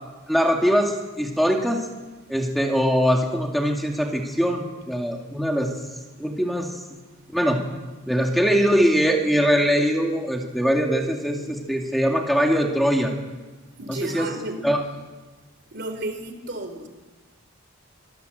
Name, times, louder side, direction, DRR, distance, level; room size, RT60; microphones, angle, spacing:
voice 1, 0.3-1.9 2.3-5.7 6.2-7.0 7.3-7.6 8.1-13.1 13.9-14.3 14.6-14.8, equal, ahead, 1 dB, 2.2 m, -22 dB
voice 2, 13.8-14.6 15.7-16.9, right 2 dB, 50° right, 8 dB, 3.4 m, -32 dB
24.5 x 19.0 x 8.0 m, 1.2 s
head